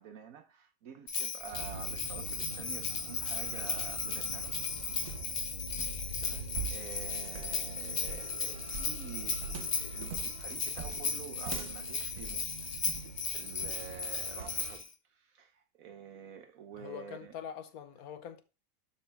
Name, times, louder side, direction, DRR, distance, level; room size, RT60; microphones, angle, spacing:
voice 1, 0.0-4.6 6.1-12.7 13.3-14.9 15.2-17.3, right 7 dB, 70° right, 1.1 m, -49 dB
Bell, 1.1-14.9, left 5 dB, 45° left, 1.2 m, -36 dB
sound 1, 1.5-14.7, right 2 dB, 50° right, 3.6 m, -45 dB
sound 2, 3.6-13.1 13.6-13.9 14.4-14.6, right 8 dB, 90° right, 1.4 m, -45 dB
voice 2, 6.2-6.5 16.7-18.4, left 8 dB, 75° left, 1.3 m, -44 dB
12.0 x 4.0 x 3.4 m
omnidirectional pair, 1.6 m